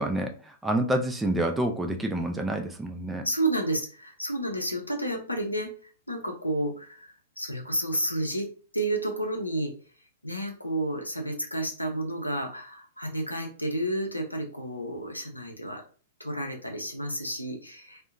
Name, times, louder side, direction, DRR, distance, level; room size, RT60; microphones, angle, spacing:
voice 1, 0.0-3.2, right 1 dB, 5° right, 3 dB, 0.3 m, -28 dB
voice 2, 3.2-8.5 8.7-9.7 10.2-15.8 16.2-18.0, right 1 dB, 85° left, 2 dB, 0.6 m, -31 dB
2.6 x 2.1 x 2.4 m, 0.39 s
figure-of-eight pair, 105°, 0 cm